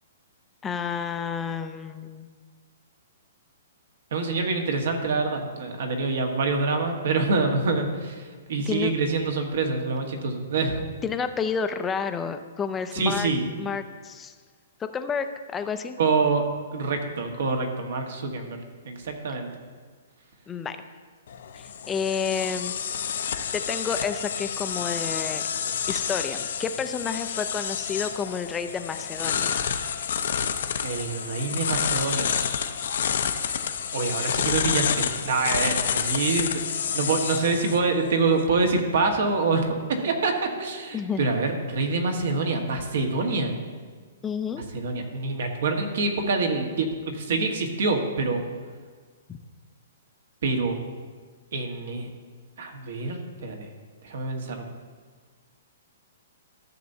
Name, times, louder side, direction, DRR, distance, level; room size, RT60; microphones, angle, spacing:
voice 1, 0.6-2.3 8.7-8.9 11.0-13.3 13.6-14.3 14.8-16.0 20.5-20.8 21.6-22.7 23.5-25.4 25.9-29.5 40.9-41.3 44.2-44.6 49.3-49.4, left 6 dB, 10° left, 9 dB, 0.4 m, -30 dB
voice 2, 4.1-10.8 12.9-13.5 16.0-16.4 16.7-18.6 18.8-19.5 30.8-32.3 33.9-43.5 44.7-48.4 50.4-50.8 51.5-52.1 52.6-53.7 54.0-54.7, right 3 dB, 65° right, 4 dB, 1.3 m, -26 dB
sound 1, 21.3-38.5, left 7 dB, 65° left, 0.6 m, -29 dB
13.5 x 6.7 x 2.7 m, 1.5 s
hypercardioid pair, 160°, 0 cm